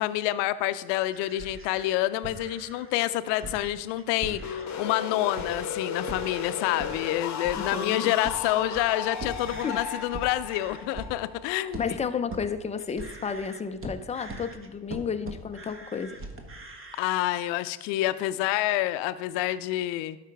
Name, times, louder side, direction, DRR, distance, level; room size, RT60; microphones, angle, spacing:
voice 1, 0.0-12.0 17.0-20.2, left 14 dB, 60° left, 14 dB, 0.6 m, -28 dB
sound 1, 1.1-4.9 5.3-5.7 5.9-17.1, right 2 dB, 25° right, 1.2 m, -42 dB
sound 2, 4.4-12.1, left 6 dB, 35° left, 0.9 m, -35 dB
voice 2, 7.6-8.1 9.6-9.8 11.8-16.2, left 6 dB, 15° left, 9 dB, 0.5 m, -32 dB
12.0 x 5.0 x 3.4 m, 1.2 s
hypercardioid pair, 75°, 48 cm